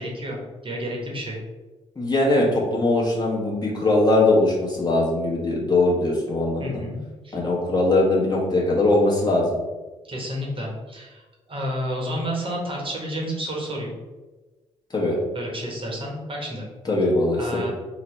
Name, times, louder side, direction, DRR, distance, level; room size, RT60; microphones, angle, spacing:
voice 1, 0.0-1.4 6.6-7.0 7.2-7.4 10.0-13.9 15.3-16.7 17.4-17.7, equal, 35° right, -2 dB, 1.0 m, -30 dB
voice 2, 2.0-6.8 7.3-9.6 14.9-15.2 16.8-17.6, left 2 dB, 25° left, -4 dB, 1.1 m, -21 dB
3.9 x 2.2 x 3.0 m, 1.2 s
hypercardioid pair, 45°, 16 cm